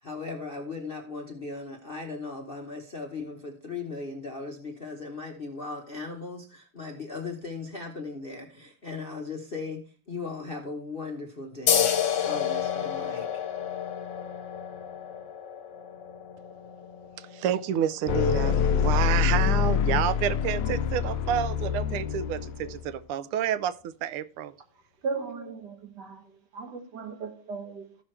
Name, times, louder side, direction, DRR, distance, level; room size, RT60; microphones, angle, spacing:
voice 1, 0.0-11.9 12.2-13.4, left 3 dB, 40° left, 0.8 m, -38 dB
sound 1, 11.7-18.8, left 9 dB, 60° left, 1.6 m, -30 dB
voice 2, 17.2-24.5, right 10 dB, 85° right, 1.5 m, -29 dB
sound 2, 18.1-22.9, left 7 dB, 75° left, 1.0 m, -26 dB
voice 3, 25.0-28.0, right 4 dB, 55° right, 1.7 m, -37 dB
15.0 x 6.0 x 3.2 m
omnidirectional pair, 2.4 m